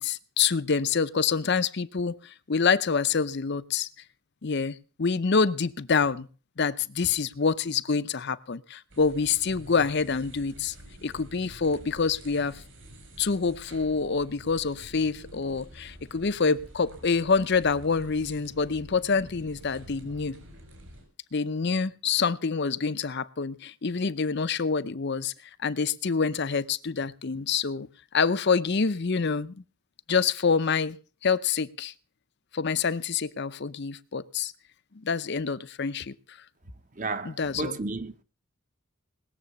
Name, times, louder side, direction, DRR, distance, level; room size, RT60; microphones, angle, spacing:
voice 1, 0.0-3.9 4.4-6.3 6.6-10.7 11.0-12.6 13.2-20.4 21.3-25.3 25.6-27.9 28.1-29.6 30.1-31.0 31.2-31.9 32.5-34.5 34.9-36.4 37.2-37.8, left 5 dB, 50° left, 0.6 m, -26 dB
sound 1, 8.9-21.0, right 1 dB, 60° right, 5.2 m, -48 dB
voice 2, 37.0-38.2, right 3 dB, 35° right, 1.0 m, -33 dB
19.5 x 7.6 x 7.0 m
head